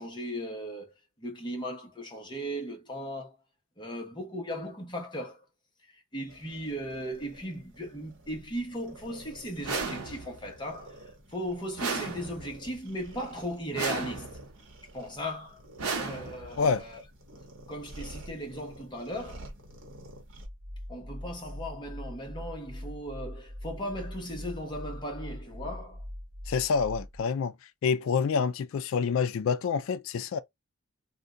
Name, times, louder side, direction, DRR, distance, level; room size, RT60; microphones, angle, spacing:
voice 1, 0.0-3.4 3.8-5.4 5.9-14.4 14.9-15.6 16.0-17.0 17.7-19.5 20.9-26.0, equal, 20° left, 0.9 m, -37 dB
sound 1, 6.3-20.5, right 1 dB, 60° right, 0.9 m, -50 dB
sound 2, 9.6-10.5 11.8-12.7 13.7-14.6 15.8-16.7, right 4 dB, 90° right, 0.8 m, -34 dB
sound 3, 20.4-27.2, left 1 dB, 25° right, 0.6 m, -41 dB
voice 2, 26.5-27.5 27.8-30.4, left 5 dB, 65° left, 0.3 m, -27 dB
2.7 x 2.2 x 3.6 m
head